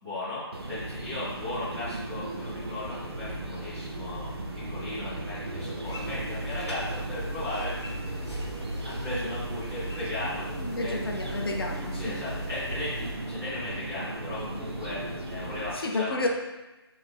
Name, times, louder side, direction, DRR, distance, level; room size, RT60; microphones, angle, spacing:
voice 1, 0.0-7.7 8.8-10.5 10.8-10.9 11.9-16.2, left 2 dB, 5° right, -14 dB, 0.3 m, -36 dB
sound 1, 0.5-15.7, right 1 dB, 65° right, 0.5 m, -37 dB
sound 2, 5.4-15.5, right 1 dB, 80° right, 0.9 m, -50 dB
sound 3, 5.8-13.1, right 1 dB, 80° left, 0.8 m, -38 dB
voice 2, 10.6-12.2 15.7-16.3, left 2 dB, 60° left, 2 dB, 0.4 m, -31 dB
2.5 x 2.0 x 3.2 m, 1.1 s
figure-of-eight pair, 165°, 14 cm